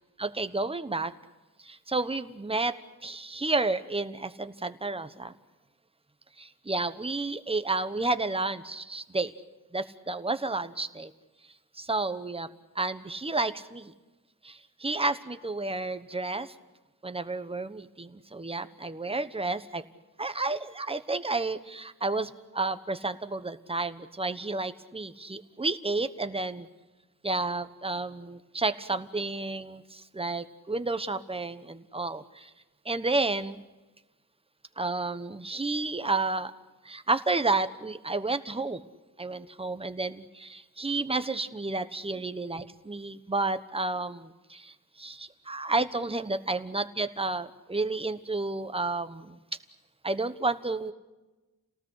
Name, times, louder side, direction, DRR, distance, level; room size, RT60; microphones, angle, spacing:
voice 1, 0.2-1.1 1.6-2.7 3.0-5.3 6.4-9.3 9.7-11.1 11.7-12.5 12.7-13.9 14.4-16.5 17.0-19.8 20.2-26.7 27.2-32.5 32.8-33.6 34.8-36.5 36.8-38.8 39.2-49.4 50.0-50.9, right 3 dB, 15° right, 10 dB, 1.1 m, -31 dB
29.5 x 18.5 x 8.2 m, 1.1 s
wide cardioid pair, 140°, 34 cm